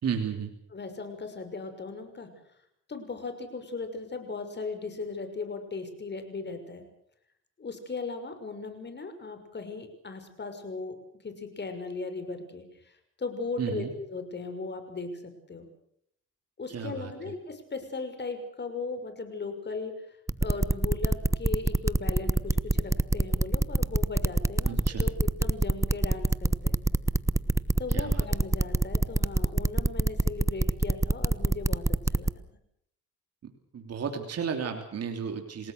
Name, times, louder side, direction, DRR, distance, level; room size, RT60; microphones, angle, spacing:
voice 1, 0.0-0.5 13.6-13.9 16.7-17.1 24.6-25.1 27.9-28.3 33.4-35.7, right 6 dB, 55° right, 4 dB, 3.0 m, -33 dB
voice 2, 0.7-2.3 2.9-6.8 7.6-10.9 11.2-15.7 16.6-26.8 27.8-32.3, left 4 dB, 35° left, 8 dB, 6.2 m, -37 dB
sound 1, 20.3-32.3, right 2 dB, 10° right, 0.9 m, -24 dB
28.5 x 18.5 x 6.6 m, 0.70 s
cardioid pair, 90°, 30 cm